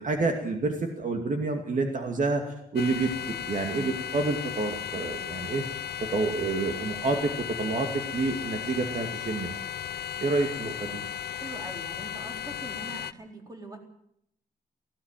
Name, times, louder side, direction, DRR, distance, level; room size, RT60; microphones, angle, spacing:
voice 1, 0.0-3.1 3.5-5.8 6.1-9.5 10.2-11.0, right 3 dB, 50° right, 4 dB, 2.5 m, -28 dB
sound 1, 2.8-13.1, left 10 dB, 80° left, 0.7 m, -35 dB
voice 2, 11.4-13.8, right 2 dB, 25° right, 2 dB, 4.2 m, -42 dB
18.5 x 17.0 x 9.1 m, 0.72 s
wide cardioid pair, 145°, 16 cm